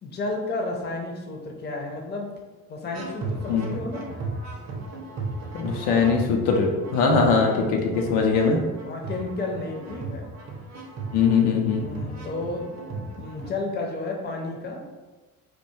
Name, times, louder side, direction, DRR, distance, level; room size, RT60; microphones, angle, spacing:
voice 1, 0.0-2.3 2.7-4.1 8.8-10.3 11.8-14.9, left 2 dB, 25° left, 1 dB, 0.5 m, -32 dB
sound 1, 2.9-13.5, right 3 dB, 40° right, 0.6 m, -36 dB
voice 2, 5.5-8.6 11.1-11.8, left 5 dB, 75° left, 1 dB, 0.5 m, -21 dB
2.2 x 2.2 x 3.0 m, 1.2 s
hypercardioid pair, 50°, 45 cm